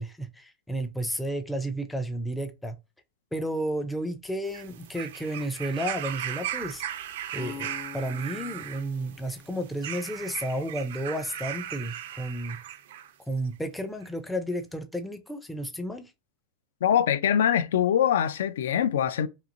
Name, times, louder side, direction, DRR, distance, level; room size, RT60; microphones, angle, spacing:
voice 1, 0.0-2.8 3.3-6.8 7.3-12.6 13.3-16.1, right 1 dB, 5° left, 0.4 m, -32 dB
sound 1, 4.4-13.1 14.0-14.1, right 11 dB, 70° right, 0.4 m, -37 dB
sound 2, 7.3-11.2, left 5 dB, 50° left, 1.0 m, -46 dB
voice 2, 16.8-19.3, left 9 dB, 80° left, 0.3 m, -23 dB
3.0 x 2.8 x 2.5 m
supercardioid pair, 160°, 0 cm